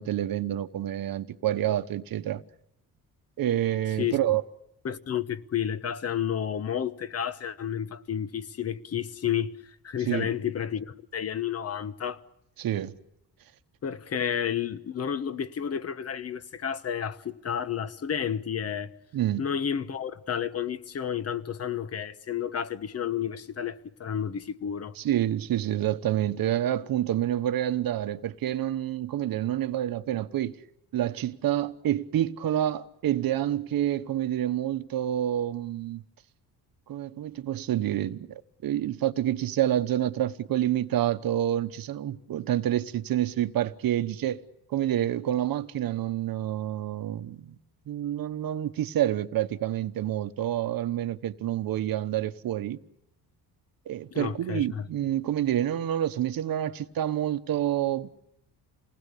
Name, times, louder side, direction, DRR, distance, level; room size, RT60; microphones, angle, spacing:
voice 1, 0.0-2.4 3.4-4.4 10.1-10.3 12.6-13.0 19.1-19.5 25.0-30.6 30.9-36.0 36.9-44.4 44.7-47.6 47.9-52.8 53.9-58.3, right 12 dB, 60° right, 1.1 m, -28 dB
voice 2, 4.8-9.5 9.8-12.2 13.8-18.9 19.4-25.0 54.1-54.9, left 8 dB, 40° left, 1.2 m, -31 dB
29.0 x 19.5 x 8.4 m
cardioid pair, 140°, 39 cm